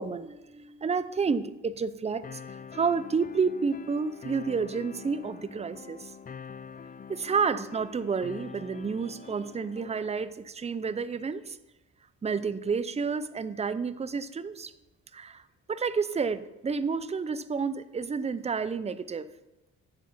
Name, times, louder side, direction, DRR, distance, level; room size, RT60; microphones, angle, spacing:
voice 1, 0.0-6.1 7.1-11.6 12.2-14.7 15.1-15.4 15.7-19.3, right 5 dB, 20° right, 14 dB, 0.6 m, -30 dB
sound 1, 2.2-10.2, left 6 dB, 30° left, 0.5 m, -45 dB
10.5 x 7.4 x 5.6 m, 0.96 s
cardioid pair, 90°, 30 cm